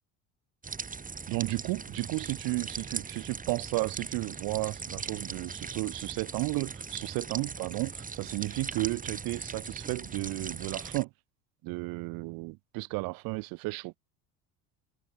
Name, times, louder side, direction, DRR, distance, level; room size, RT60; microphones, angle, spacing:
sound 1, 0.6-11.0, right 5 dB, 20° right, 7.7 m, -40 dB
voice 1, 1.3-11.1 11.6-14.0, right 25 dB, 75° right, 4.0 m, -33 dB
supercardioid pair, 110°, 36 cm